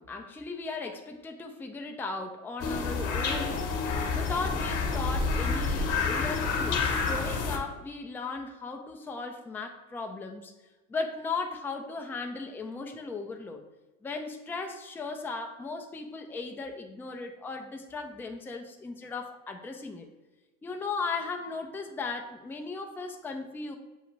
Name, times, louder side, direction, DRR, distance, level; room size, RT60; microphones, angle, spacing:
voice 1, 0.0-3.6 4.1-10.5 10.9-13.6 14.0-20.1 20.6-23.8, left 4 dB, 5° left, 4 dB, 0.4 m, -37 dB
sound 1, 2.6-7.6, left 4 dB, 45° left, 1.0 m, -29 dB
7.1 x 2.4 x 3.0 m, 1.1 s
supercardioid pair, 95°, 40 cm